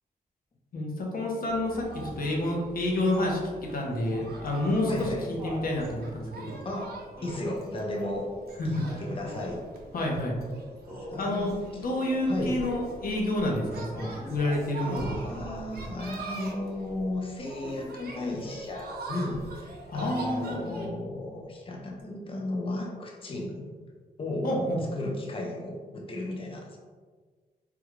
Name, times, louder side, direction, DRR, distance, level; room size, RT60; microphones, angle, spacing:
voice 1, 0.7-6.6 8.6-9.0 9.9-10.4 11.2-15.4 19.9-20.9 24.4-24.8, left 1 dB, 65° left, -1 dB, 0.7 m, -29 dB
sound 1, 1.4-20.9, right 3 dB, 80° right, 0.6 m, -43 dB
Laughter, 4.5-5.8 7.2-7.7 8.8-9.3 10.9-11.4 13.9-14.4 15.3-15.7 18.1-18.6 20.0-20.6 22.0-22.1, equal, 15° right, 0.9 m, -43 dB
voice 2, 4.9-5.3 6.6-8.4 9.0-9.6 11.0-11.5 12.3-12.6 14.8-23.8 24.2-24.5 24.9-26.8, left 1 dB, 35° left, 0 dB, 0.5 m, -34 dB
3.6 x 2.2 x 3.0 m, 1.5 s
wide cardioid pair, 110°, 16 cm